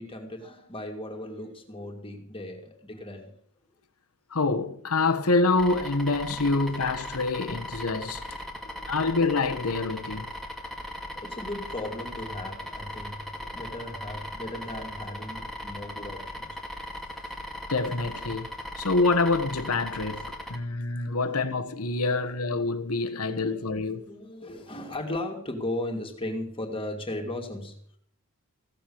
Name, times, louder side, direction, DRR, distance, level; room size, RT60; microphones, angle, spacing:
voice 1, 0.0-3.4 7.4-7.5 8.4-9.2 11.1-16.6 20.4-20.8 21.1-21.4 22.0-22.4 23.3-23.5 23.9-28.0, left 1 dB, 25° left, 2.8 m, -37 dB
voice 2, 4.3-8.2 8.9-10.3 17.7-24.1, left 3 dB, 75° left, 1.4 m, -26 dB
sound 1, 5.6-20.6, left 1 dB, ahead, 2.2 m, -38 dB
16.5 x 7.7 x 8.8 m
head